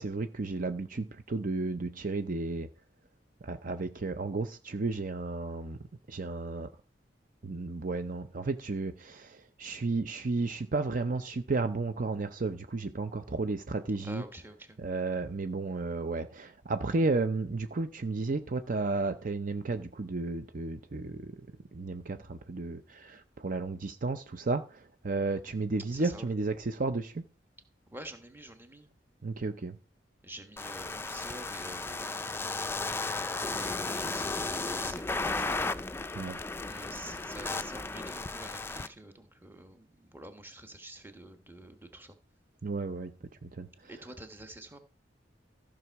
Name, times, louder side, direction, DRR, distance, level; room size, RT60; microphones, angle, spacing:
voice 1, 0.0-2.7 3.4-5.8 6.1-6.7 7.4-14.2 14.8-21.4 21.7-27.2 29.2-29.8 36.2-36.4 42.6-43.1 43.4-43.7, right 3 dB, 50° right, 0.6 m, -33 dB
voice 2, 14.0-14.8 25.9-26.3 27.9-28.9 30.2-32.8 33.5-35.7 36.6-42.2 43.8-44.8, right 1 dB, 10° right, 1.3 m, -48 dB
sound 1, 30.6-38.9, left 3 dB, 15° left, 0.4 m, -34 dB
14.0 x 6.2 x 4.6 m
head